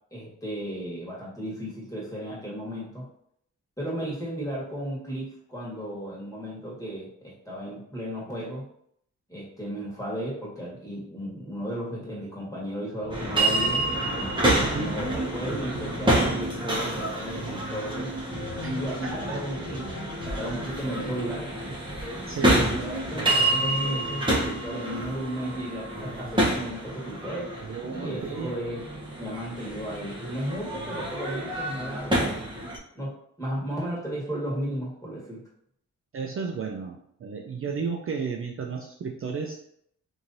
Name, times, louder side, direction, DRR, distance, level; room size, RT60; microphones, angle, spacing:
voice 1, 0.1-3.0 3.8-8.6 9.3-13.8 14.4-18.1 18.6-20.0 20.2-21.5 22.4-27.5 27.9-28.8 29.2-32.4 32.9-33.1 33.4-35.4, right 1 dB, 10° left, -5 dB, 1.5 m, -34 dB
sound 1, 13.0-16.3 18.3-20.7, left 2 dB, 85° left, 0.6 m, -42 dB
sound 2, 13.1-32.8, right 1 dB, 15° right, 0.8 m, -28 dB
voice 2, 14.6-14.9 15.5-15.8 18.6-18.7 19.0-19.1 22.3-22.6 27.6-28.6 31.9-32.0 36.1-39.6, right 5 dB, 45° right, 1 dB, 0.4 m, -33 dB
3.0 x 2.7 x 2.6 m, 0.70 s
cardioid pair, 75°, 33 cm